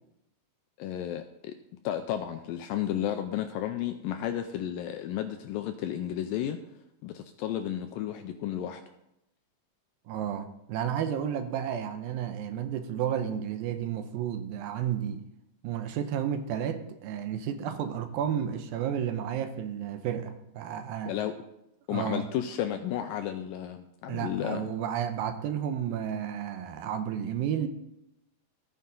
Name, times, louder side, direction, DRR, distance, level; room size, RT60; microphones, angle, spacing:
voice 1, 0.8-1.6 1.8-6.6 7.0-8.8 21.1-21.3 21.9-24.7, left 11 dB, 85° left, 7 dB, 2.0 m, -32 dB
voice 2, 10.1-15.2 15.6-21.1 21.9-22.2 24.1-27.7, right 9 dB, 80° right, 9 dB, 2.4 m, -32 dB
14.5 x 9.5 x 3.8 m, 0.85 s
omnidirectional pair, 4.5 m